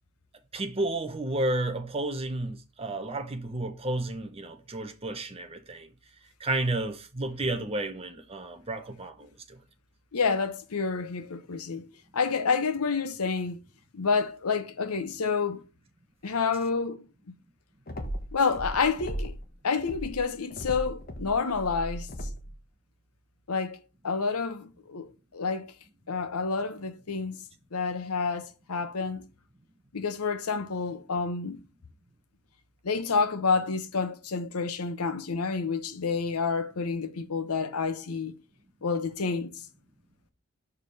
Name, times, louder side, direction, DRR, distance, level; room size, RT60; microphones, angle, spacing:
voice 1, 0.5-5.9 6.4-9.6, right 2 dB, 25° right, 0.9 m, -32 dB
voice 2, 10.1-11.9 12.1-13.6 13.9-15.6 16.2-17.1 18.3-19.4 19.6-22.3 23.5-25.7 26.1-27.4 27.7-29.3 29.9-31.6 32.8-38.3 38.8-39.6, left 5 dB, 85° left, 0.8 m, -29 dB
sound 1, 17.9-19.5 19.8-22.6, equal, 40° left, 1.1 m, -37 dB
4.9 x 4.8 x 5.8 m
head